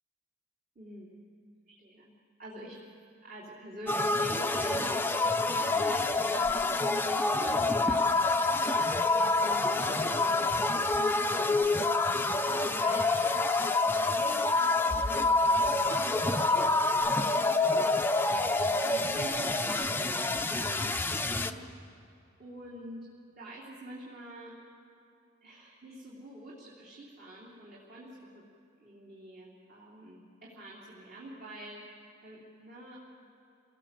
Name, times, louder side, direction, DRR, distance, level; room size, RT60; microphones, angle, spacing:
voice 1, 0.8-1.2 1.7-2.1 2.4-2.8 3.2-4.9 5.5-8.1 9.1-10.6 10.9-11.9 12.1-13.1 14.0-18.0 18.6-21.6 22.4-23.1 23.4-24.6 25.4-28.4 28.8-31.8 32.2-33.0, equal, 45° right, -5 dB, 3.5 m, -46 dB
sound 1, 3.9-21.5, left 3 dB, 10° left, 0.7 m, -27 dB
28.5 x 19.0 x 7.6 m, 2.6 s
head